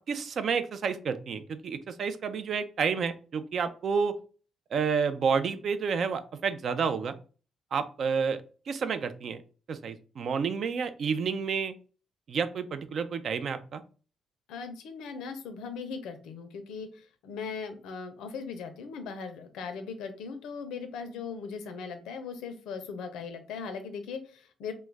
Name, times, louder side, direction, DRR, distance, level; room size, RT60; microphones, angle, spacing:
voice 1, 0.0-4.1 4.7-7.1 7.7-8.4 8.7-9.4 9.7-11.7 12.3-13.8, right 6 dB, 60° right, 11 dB, 0.3 m, -30 dB
voice 2, 14.5-24.7, left 5 dB, 90° left, 8 dB, 0.5 m, -39 dB
2.3 x 2.0 x 3.2 m, 0.37 s
cardioid pair, 90°, 0 cm